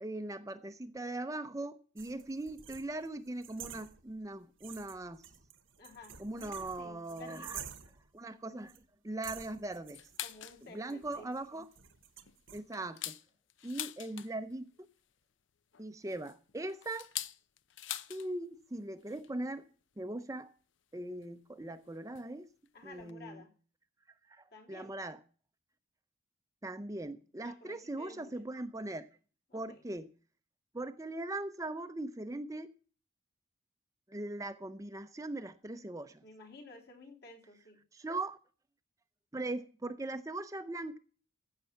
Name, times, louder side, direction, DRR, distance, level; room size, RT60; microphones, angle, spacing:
voice 1, 0.0-5.2 6.2-7.6 8.1-8.7 9.0-10.0 10.7-11.7 12.5-13.2 13.6-14.7 15.8-17.1 18.1-19.7 20.0-20.5 20.9-22.5 22.8-23.4 24.3-25.2 26.6-29.1 29.5-30.1 30.7-32.7 34.1-36.2 37.9-38.4 39.3-41.0, right 2 dB, 15° right, 0.5 m, -40 dB
sound 1, 2.0-4.3 4.6-8.1 8.7-8.8 9.2-12.6, right 9 dB, 85° right, 1.3 m, -50 dB
voice 2, 5.8-7.7 10.2-11.3 22.7-23.5 24.5-25.0 27.4-28.3 29.5-29.8 36.2-37.8, left 2 dB, 55° left, 3.3 m, -53 dB
sound 2, 9.9-10.6 11.0-11.1 11.5-11.8 12.3-14.5 15.7-18.3 18.6-18.7 19.0-19.3 20.2-20.3 21.2-21.3 22.2-22.3 22.7-22.8 22.9-23.1, left 12 dB, 75° left, 0.7 m, -43 dB
15.0 x 6.7 x 5.7 m
head